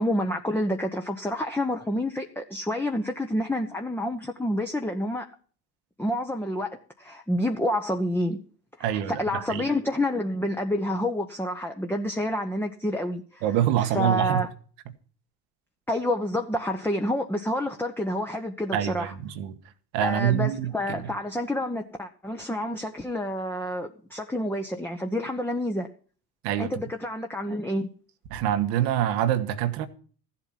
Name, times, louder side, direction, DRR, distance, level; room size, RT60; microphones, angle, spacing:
voice 1, 0.0-5.3 6.0-8.4 8.8-13.4 13.9-14.5 15.9-19.1 20.0-25.9 26.6-27.9, left 1 dB, 5° left, 1.1 m, -28 dB
voice 2, 8.8-9.7 13.4-14.5 18.7-19.6 19.9-21.1 26.4-26.7 28.3-29.9, right 11 dB, 75° right, 1.4 m, -26 dB
14.5 x 8.2 x 5.9 m
hypercardioid pair, 75°, 50 cm